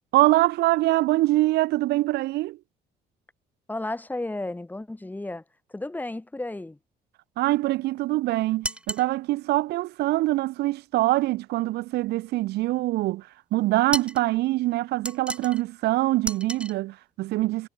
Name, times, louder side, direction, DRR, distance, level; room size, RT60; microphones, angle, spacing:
voice 1, 0.1-2.6 7.4-17.7, right 18 dB, 75° right, 0.7 m, -24 dB
voice 2, 3.7-5.4 5.7-6.8, left 2 dB, 10° left, 3.5 m, -33 dB
sound 1, 8.6-9.1 13.9-14.3 15.1-15.6 16.2-16.7, right 1 dB, 5° right, 1.6 m, -32 dB
cardioid pair, 110°, 17 cm